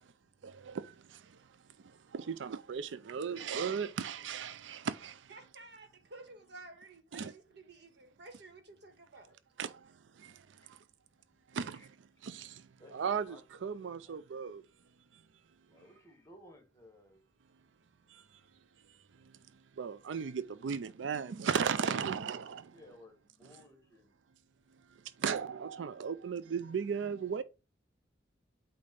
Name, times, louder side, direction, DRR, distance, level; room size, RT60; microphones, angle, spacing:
voice 1, 2.1-5.1 7.1-7.3 9.6-9.7 11.6-11.8 12.2-12.5 12.9-13.4 13.6-14.6 19.8-22.6 25.2-27.4, right 6 dB, 85° right, 0.4 m, -35 dB
voice 2, 3.2-3.7 10.6-10.7 11.7-11.9 12.8-14.3 15.6-17.2 22.7-24.2, left 1 dB, 15° left, 1.5 m, -58 dB
voice 3, 5.3-9.4, right 2 dB, 65° right, 1.7 m, -53 dB
8.6 x 2.9 x 5.2 m
head